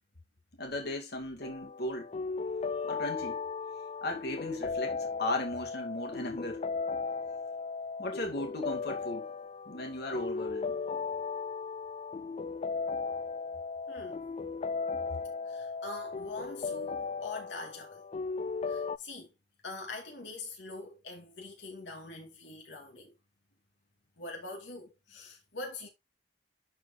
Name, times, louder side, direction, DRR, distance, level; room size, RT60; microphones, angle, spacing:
voice 1, 0.6-2.1 2.8-3.5 4.0-6.6 8.0-9.3 9.7-10.8, left 1 dB, 60° left, 2.2 m, -36 dB
sound 1, 1.4-19.0, left 4 dB, 35° left, 0.3 m, -36 dB
voice 2, 13.9-14.2 15.5-18.0 18.7-19.3 19.6-23.1 24.2-25.9, left 2 dB, 80° left, 1.9 m, -43 dB
12.0 x 4.4 x 2.7 m
head